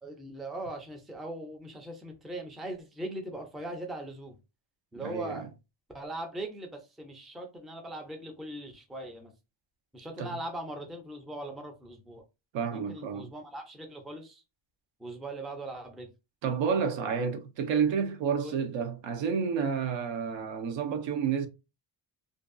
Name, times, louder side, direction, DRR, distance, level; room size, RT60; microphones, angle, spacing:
voice 1, 0.0-4.4 4.9-5.5 5.9-9.3 9.9-12.2 12.7-14.4 15.0-16.1 18.4-18.6, right 1 dB, ahead, 0.3 m, -40 dB
voice 2, 5.0-5.5 10.2-10.4 12.5-13.3 16.4-21.5, right 6 dB, 80° right, 0.7 m, -30 dB
2.6 x 2.3 x 2.5 m
cardioid pair, 155°, 44 cm